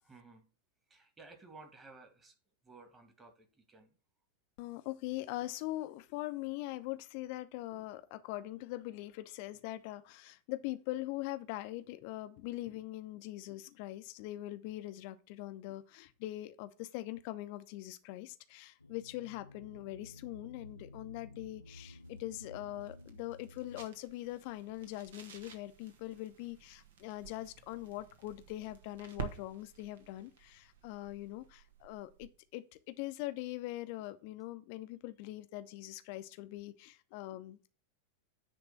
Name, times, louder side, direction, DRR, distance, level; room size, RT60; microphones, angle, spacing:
voice 1, 0.0-0.5 0.9-2.3 2.6-3.9, right 3 dB, 20° right, 2.1 m, -56 dB
voice 2, 4.6-37.7, left 16 dB, 45° left, 0.8 m, -42 dB
sound 1, 18.8-23.9, left 2 dB, 80° left, 0.4 m, -53 dB
sound 2, 21.8-32.5, right 8 dB, 60° right, 1.5 m, -51 dB
10.0 x 3.5 x 6.8 m
figure-of-eight pair, 90°, 0 cm